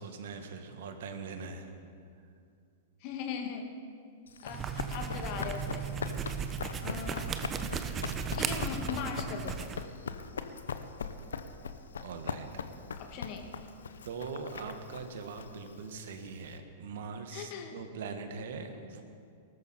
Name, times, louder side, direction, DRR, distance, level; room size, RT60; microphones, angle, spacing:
voice 1, 0.0-1.7 4.4-4.5 12.0-12.6 14.0-19.0, right 5 dB, 65° right, 6 dB, 1.6 m, -42 dB
voice 2, 3.0-3.8 4.4-5.9 6.8-7.4 8.3-9.7 12.9-13.6 17.3-17.8, left 6 dB, 45° left, 4 dB, 2.0 m, -39 dB
Run, 4.3-16.5, left 6 dB, 75° left, 0.8 m, -41 dB
sound 1, 4.5-9.8, right 6 dB, 25° right, 0.9 m, -36 dB
19.5 x 13.0 x 4.4 m, 2.3 s
figure-of-eight pair, 100°, 0 cm